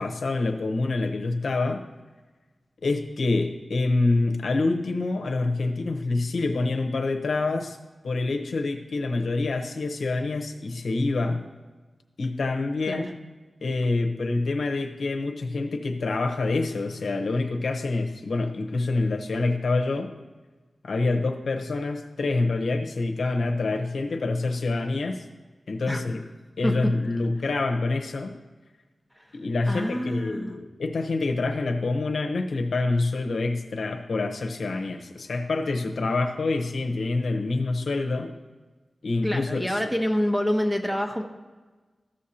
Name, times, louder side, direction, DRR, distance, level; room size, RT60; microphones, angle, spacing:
voice 1, 0.0-1.8 2.8-7.8 8.0-11.4 12.2-13.1 13.6-20.1 20.8-25.2 25.7-26.2 26.6-28.4 29.3-38.3 39.0-39.8, left 3 dB, 85° left, 4 dB, 0.8 m, -26 dB
voice 2, 29.7-30.6 39.2-41.2, equal, 5° right, 3 dB, 1.1 m, -26 dB
14.0 x 6.4 x 2.8 m, 1.3 s
wide cardioid pair, 80°, 0 cm